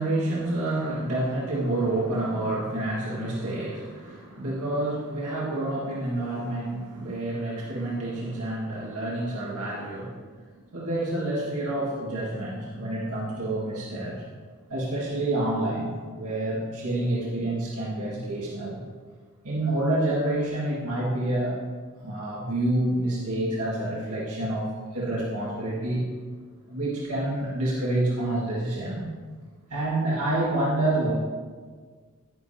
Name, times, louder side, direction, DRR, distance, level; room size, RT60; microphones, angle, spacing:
voice 1, 0.0-10.2 10.7-14.2 14.7-18.8 19.4-21.6 22.0-26.0 26.7-29.1 29.7-31.1, right 1 dB, 85° right, -6 dB, 1.9 m, -28 dB
10.5 x 10.0 x 2.8 m, 1.5 s
head